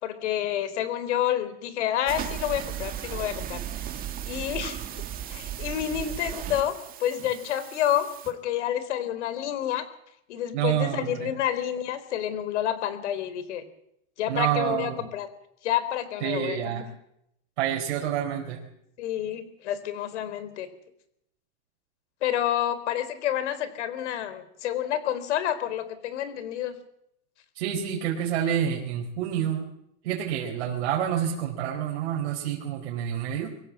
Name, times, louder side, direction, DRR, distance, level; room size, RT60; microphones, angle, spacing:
voice 1, 0.0-3.6 4.3-4.8 5.3-9.8 10.3-13.6 14.2-15.3 15.6-16.8 19.0-20.7 22.2-26.8, left 11 dB, 80° left, 13 dB, 3.8 m, -29 dB
sound 1, 2.1-8.3, right 11 dB, 25° right, 1.9 m, -36 dB
voice 2, 10.5-11.3 14.3-15.0 16.2-16.9 17.6-18.6 27.5-29.7 30.0-33.5, right 10 dB, 70° right, 0 dB, 4.5 m, -28 dB
24.0 x 16.0 x 7.5 m, 0.78 s
supercardioid pair, 165°, 35 cm